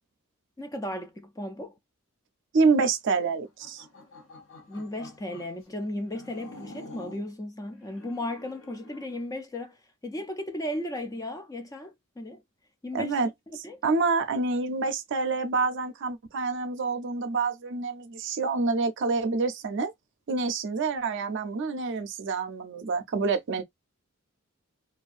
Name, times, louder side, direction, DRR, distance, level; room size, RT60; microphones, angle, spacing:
voice 1, 0.6-1.7 4.7-9.8 10.0-12.4 12.8-13.8, left 1 dB, 15° left, 0.4 m, -35 dB
voice 2, 2.5-3.8 12.9-13.3 13.6-19.9 20.3-23.6, right 4 dB, 60° right, 0.5 m, -27 dB
sound 1, 3.5-5.6 6.1-7.3 7.8-9.2, left 2 dB, 70° left, 0.9 m, -48 dB
2.6 x 2.3 x 2.4 m
head